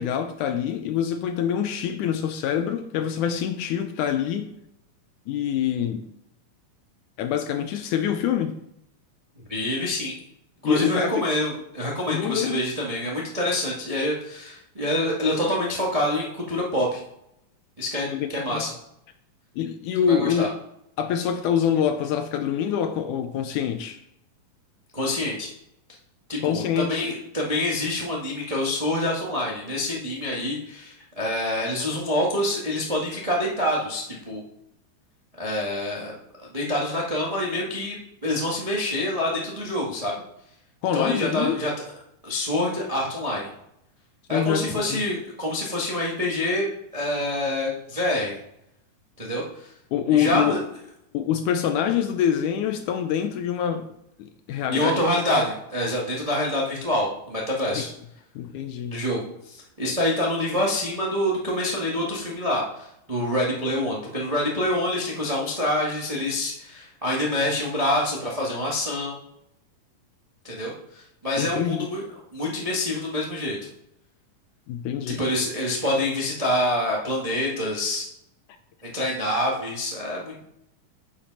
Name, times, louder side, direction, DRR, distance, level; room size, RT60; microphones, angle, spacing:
voice 1, 0.0-4.5 5.3-6.0 7.2-8.5 10.6-11.2 12.1-12.6 18.1-18.6 19.6-20.4 21.0-24.0 26.4-27.1 40.8-41.6 44.3-45.1 49.9-50.6 51.1-53.9 54.2-55.0 57.7-57.9 58.4-59.0 71.4-71.9 74.7-75.2, left 9 dB, 80° left, 8 dB, 1.9 m, -25 dB
voice 2, 9.5-10.2 10.6-17.0 17.8-18.7 20.1-20.5 24.9-25.5 26.3-34.4 35.4-40.1 40.9-41.7 42.2-43.5 44.3-46.7 46.9-48.4 49.2-49.7 50.1-50.6 54.7-57.9 58.9-69.2 70.4-72.0 72.3-73.6 75.2-78.1 78.8-80.5, left 1 dB, 65° right, -3 dB, 0.3 m, -26 dB
7.6 x 7.1 x 5.4 m, 0.78 s
omnidirectional pair, 4.0 m